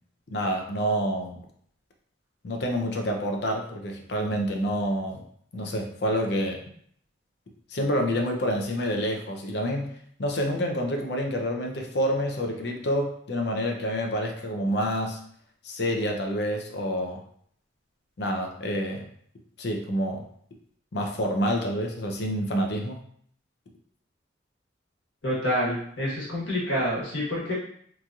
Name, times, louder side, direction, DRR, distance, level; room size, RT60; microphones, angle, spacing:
voice 1, 0.3-1.4 2.4-5.2 5.5-6.6 7.7-9.9 10.2-15.2 15.6-17.2 18.2-19.0 19.6-20.2 20.9-23.0, equal, 55° left, 2 dB, 0.5 m, -28 dB
voice 2, 25.2-27.5, equal, 75° left, -5 dB, 1.3 m, -27 dB
3.0 x 2.6 x 2.3 m, 0.62 s
head